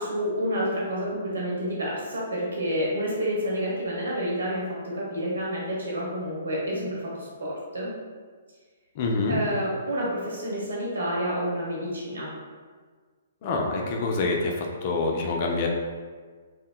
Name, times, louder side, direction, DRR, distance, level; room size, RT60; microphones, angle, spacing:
voice 1, 0.0-7.9 9.3-12.3, equal, 80° right, -5 dB, 1.0 m, -29 dB
voice 2, 8.9-9.4 13.4-15.7, left 3 dB, 45° left, 0 dB, 0.5 m, -26 dB
3.7 x 2.1 x 2.2 m, 1.5 s
hypercardioid pair, 135°, 0 cm